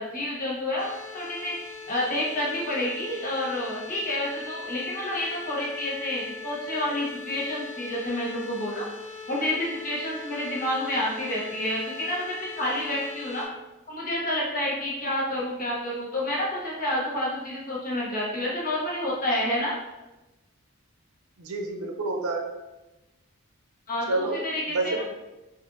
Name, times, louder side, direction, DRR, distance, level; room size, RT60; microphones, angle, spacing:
voice 1, 0.0-1.5 1.9-8.8 9.3-13.5 13.9-19.8 23.9-25.0, left 1 dB, 40° left, -5 dB, 1.0 m, -29 dB
sound 1, 0.8-13.5, left 4 dB, 35° right, 1.1 m, -40 dB
voice 2, 21.4-22.4 24.1-24.4 24.7-25.0, right 3 dB, 85° right, 2 dB, 0.6 m, -28 dB
4.7 x 2.5 x 2.6 m, 1.0 s
head